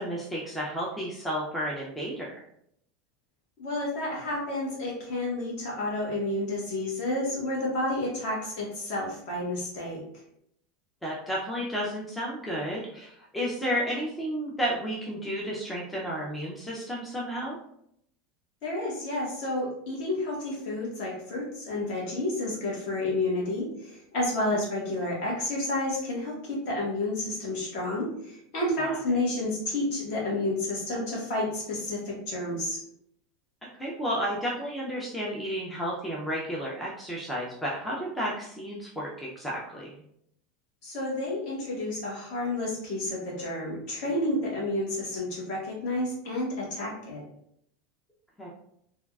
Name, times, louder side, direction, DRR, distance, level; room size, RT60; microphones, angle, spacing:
voice 1, 0.0-2.4 11.0-17.6 28.8-29.0 33.8-39.9 48.4-48.5, equal, 5° left, -5 dB, 0.4 m, -32 dB
voice 2, 3.6-10.0 18.6-32.8 40.8-47.2, left 1 dB, 50° left, -3 dB, 1.1 m, -30 dB
3.4 x 2.3 x 2.2 m, 0.72 s
supercardioid pair, 175°, 0 cm